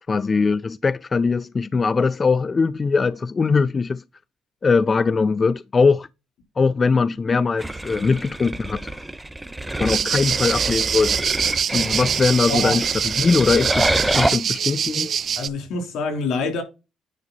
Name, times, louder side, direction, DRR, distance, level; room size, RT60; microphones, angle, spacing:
voice 1, 0.1-4.0 4.6-6.1 6.6-8.8 9.8-11.2 11.7-15.1, left 4 dB, 35° left, 0.4 m, -21 dB
sound 1, 7.6-14.4, right 1 dB, 10° right, 0.9 m, -27 dB
sound 2, 9.9-15.5, right 8 dB, 60° right, 0.6 m, -24 dB
voice 2, 12.5-12.8 15.4-16.6, left 3 dB, 80° left, 3.3 m, -25 dB
9.7 x 5.1 x 4.0 m
cardioid pair, 90°, 0 cm